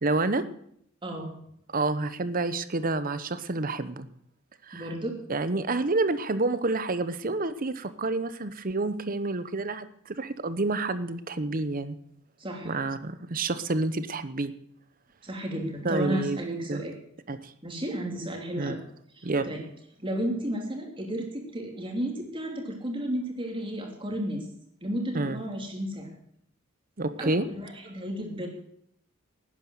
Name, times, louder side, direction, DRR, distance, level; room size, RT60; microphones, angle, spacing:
voice 1, 0.0-0.4 1.7-4.1 4.7-4.9 5.3-12.0 12.6-14.5 15.8-16.8 17.3-17.5 18.6-18.8 19.2-19.5 25.1-25.4 27.0-27.4, right 2 dB, 40° right, 13 dB, 0.9 m, -29 dB
voice 2, 1.0-1.3 4.7-5.1 12.4-12.7 15.2-16.9 17.6-18.8 19.2-19.6 20.0-24.4 24.8-26.1 27.2-28.5, equal, 25° right, 1 dB, 2.9 m, -33 dB
12.0 x 9.7 x 7.9 m, 0.69 s
head